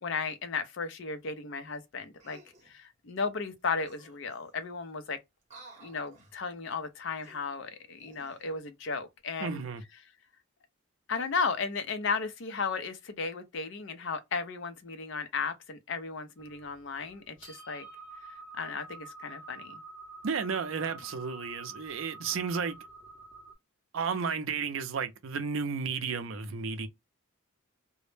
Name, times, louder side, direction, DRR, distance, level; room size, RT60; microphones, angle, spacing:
voice 1, 0.0-2.4 2.6-5.2 5.8-9.6 11.1-17.9 18.6-19.8, left 5 dB, 60° left, 0.5 m, -35 dB
sound 1, 2.2-2.7 3.6-3.7 3.8-4.7 5.4-6.4 7.1-8.5 9.0-9.2, right 2 dB, 35° right, 0.9 m, -56 dB
voice 2, 9.4-9.8 20.2-22.8 23.9-26.9, right 5 dB, 65° right, 0.5 m, -33 dB
sound 2, 16.4-23.5, right 3 dB, 5° right, 0.7 m, -48 dB
2.1 x 2.0 x 3.1 m
head